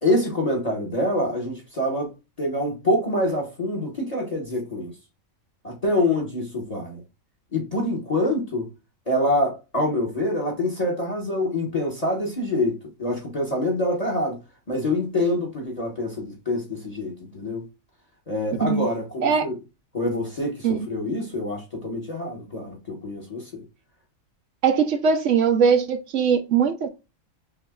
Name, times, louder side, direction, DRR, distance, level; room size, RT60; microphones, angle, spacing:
voice 1, 0.0-2.1 2.4-4.9 5.6-7.0 7.5-8.7 9.1-14.4 14.7-17.7 18.3-19.6 19.9-23.6, left 1 dB, 30° left, 1.2 m, -26 dB
voice 2, 24.6-26.9, right 6 dB, 70° right, 1.0 m, -20 dB
5.6 x 2.6 x 2.3 m
omnidirectional pair, 1.4 m